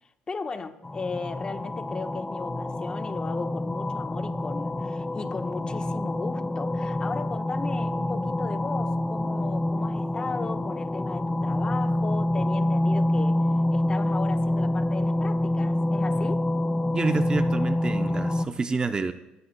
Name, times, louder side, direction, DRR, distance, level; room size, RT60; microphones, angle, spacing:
voice 1, 0.3-13.4 13.7-16.4, left 4 dB, 30° left, 7 dB, 1.1 m, -36 dB
sound 1, 0.8-18.5, left 1 dB, 15° left, 0.4 m, -27 dB
voice 2, 16.9-19.1, right 4 dB, 25° right, 10 dB, 0.6 m, -28 dB
25.0 x 13.5 x 2.2 m, 0.98 s
cardioid pair, 95°, 3 cm